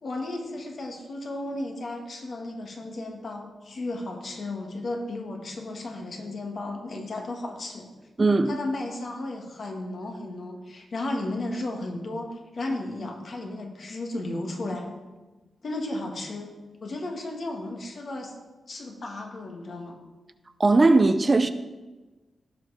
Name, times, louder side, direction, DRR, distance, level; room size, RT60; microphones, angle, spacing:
voice 1, 0.0-7.9 8.5-14.9 15.6-16.5 16.8-18.3 18.7-20.0, left 2 dB, 55° left, 2 dB, 1.9 m, -34 dB
voice 2, 8.2-8.6 20.6-21.5, right 3 dB, 30° right, 11 dB, 0.5 m, -19 dB
16.5 x 5.6 x 4.9 m, 1.2 s
wide cardioid pair, 105°, 0 cm